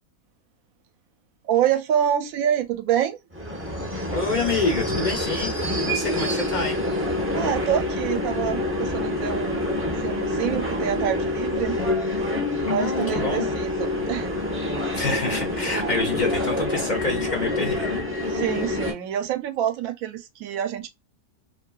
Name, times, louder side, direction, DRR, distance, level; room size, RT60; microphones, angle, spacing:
voice 1, 1.5-3.2 7.3-9.7 10.0-11.8 12.6-14.3 18.3-20.9, right 10 dB, 70° right, 0.9 m, -26 dB
sound 1, 3.3-18.9, left 1 dB, 20° right, 0.4 m, -26 dB
voice 2, 4.1-5.5 5.9-6.8 12.6-13.5 14.9-18.1, left 3 dB, 60° left, 0.5 m, -27 dB
2.7 x 2.3 x 2.3 m
omnidirectional pair, 1.7 m